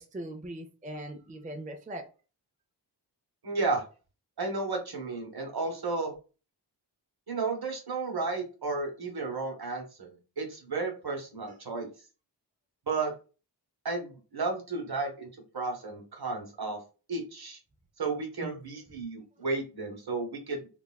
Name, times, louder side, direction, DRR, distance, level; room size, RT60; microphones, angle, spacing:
voice 1, 0.0-2.0 11.5-11.6 18.4-18.5, right 1 dB, 20° right, 0.5 m, -40 dB
voice 2, 3.4-3.8 4.4-6.1 7.3-10.1 10.4-11.9 12.9-13.1 13.8-15.3 15.5-16.8 17.1-17.6 18.0-20.7, right 3 dB, 60° right, 1.0 m, -33 dB
3.3 x 2.3 x 2.2 m
wide cardioid pair, 55°, 43 cm